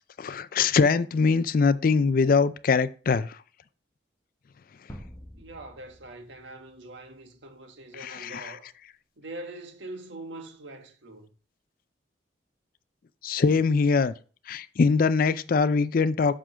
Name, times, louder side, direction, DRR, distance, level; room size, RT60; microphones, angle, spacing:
voice 1, 0.2-3.4 8.0-8.5 13.2-14.1 14.5-16.3, left 4 dB, 50° left, 0.4 m, -23 dB
sound 1, 4.9-7.3, equal, 15° left, 1.0 m, -47 dB
voice 2, 5.3-8.7 9.2-11.3, right 2 dB, 85° right, 1.6 m, -43 dB
7.5 x 3.7 x 6.2 m
head